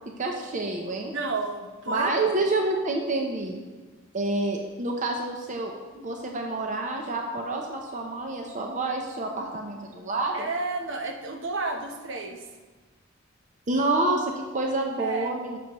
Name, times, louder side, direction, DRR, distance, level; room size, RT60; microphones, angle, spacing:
voice 1, 0.1-1.1 1.9-3.6 4.1-10.5 13.7-15.6, right 2 dB, 40° right, 2 dB, 0.7 m, -28 dB
voice 2, 1.1-2.1 10.3-12.4 15.0-15.3, right 3 dB, 70° right, 3 dB, 0.9 m, -31 dB
9.8 x 7.0 x 3.0 m, 1.3 s
head